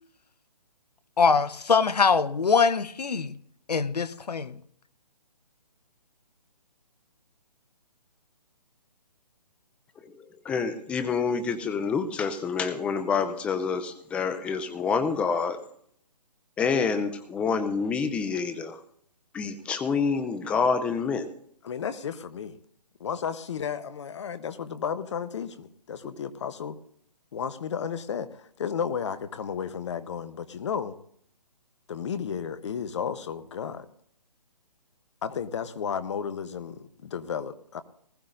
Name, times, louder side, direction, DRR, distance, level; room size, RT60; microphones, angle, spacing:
voice 1, 1.2-3.3 3.7-4.5, left 5 dB, 80° left, 0.9 m, -23 dB
voice 2, 10.4-15.6 16.6-18.8 19.3-21.3, left 5 dB, 5° left, 0.5 m, -27 dB
voice 3, 21.6-22.6 23.0-26.8 27.3-31.0 31.9-33.9 35.2-37.8, left 7 dB, 45° left, 1.0 m, -33 dB
19.5 x 15.0 x 2.6 m
figure-of-eight pair, 145°, 20 cm